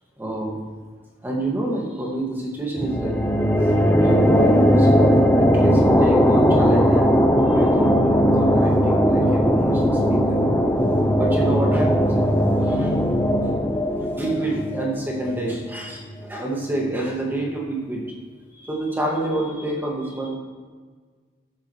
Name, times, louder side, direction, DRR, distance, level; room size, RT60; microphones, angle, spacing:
voice 1, 0.2-0.6 1.2-3.2 4.0-7.2 7.5-10.5 11.2-12.1 12.6-12.9 14.2-18.0 18.6-20.3, right 2 dB, 10° right, -2 dB, 1.9 m, -27 dB
sound 1, 2.8-16.2, equal, 10° left, 0.6 m, -19 dB
13.5 x 9.1 x 3.2 m, 1.5 s
head